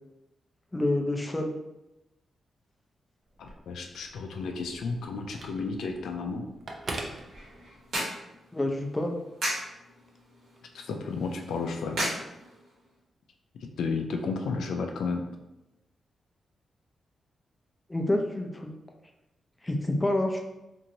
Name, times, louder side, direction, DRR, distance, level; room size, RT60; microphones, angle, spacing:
voice 1, 0.7-1.5 8.5-9.2 17.9-18.7 19.6-20.4, left 1 dB, 15° left, 2 dB, 0.4 m, -27 dB
Telephone, 3.3-8.1, right 2 dB, 45° right, 0.5 m, -43 dB
voice 2, 3.4-6.5 10.7-12.0 13.6-15.3, left 4 dB, 90° left, 3 dB, 0.3 m, -32 dB
sound 1, 7.0-13.0, right 1 dB, 85° right, 1.1 m, -37 dB
2.9 x 2.6 x 2.7 m, 0.95 s
cardioid pair, 90°, 0 cm